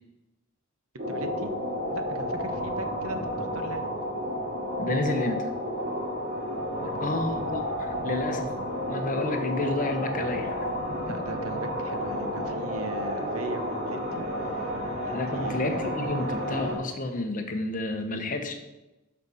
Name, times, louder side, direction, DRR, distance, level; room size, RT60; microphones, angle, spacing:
sound 1, 1.0-16.8, equal, 45° right, 2.0 m, -31 dB
voice 1, 1.1-1.5 1.9-3.9 6.8-7.4 11.1-14.2 15.0-15.9, right 2 dB, 80° right, 7 dB, 1.0 m, -39 dB
voice 2, 4.8-5.5 7.0-8.5 8.9-10.6 15.1-18.5, left 2 dB, 40° left, 5 dB, 0.9 m, -30 dB
11.5 x 5.6 x 4.1 m, 1.0 s
head